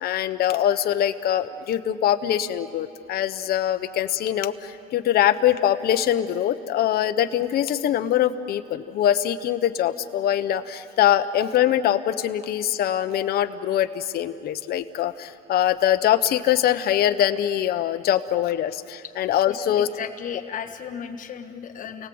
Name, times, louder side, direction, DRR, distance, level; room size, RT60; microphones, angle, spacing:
voice 1, 0.0-19.9, left 11 dB, 65° left, 9 dB, 1.0 m, -23 dB
voice 2, 19.4-22.1, left 8 dB, 50° left, 3 dB, 1.5 m, -35 dB
29.5 x 18.5 x 8.0 m, 2.5 s
cardioid pair, 110°, 17 cm